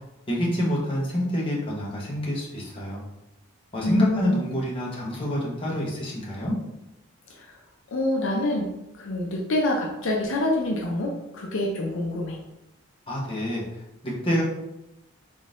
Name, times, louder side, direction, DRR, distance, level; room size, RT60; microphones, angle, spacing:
voice 1, 0.3-3.0 3.7-6.6 13.1-14.4, left 1 dB, 25° left, -5 dB, 0.9 m, -27 dB
voice 2, 3.8-4.4 7.3-7.6 7.9-12.4, left 1 dB, 60° left, -1 dB, 0.5 m, -27 dB
3.7 x 3.6 x 2.5 m, 0.91 s
head